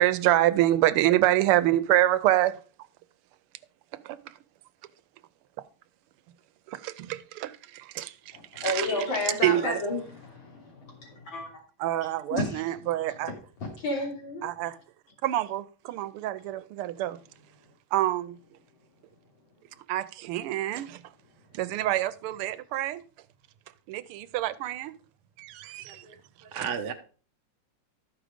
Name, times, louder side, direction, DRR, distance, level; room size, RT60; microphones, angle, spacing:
voice 1, 0.0-2.6 4.0-4.2 6.7-8.9 9.4-9.8 11.8-13.3 14.4-14.8 15.2-17.2 17.9-18.4 19.9-21.0 21.5-23.0 23.9-24.9 25.4-26.0 26.5-26.7, right 14 dB, 85° right, 1.6 m, -26 dB
voice 2, 8.3-11.5 12.3-12.6 13.6-14.4, left 2 dB, 60° left, 3.8 m, -31 dB
voice 3, 25.8-26.9, right 7 dB, 40° right, 0.8 m, -35 dB
13.0 x 5.0 x 5.0 m
omnidirectional pair, 2.4 m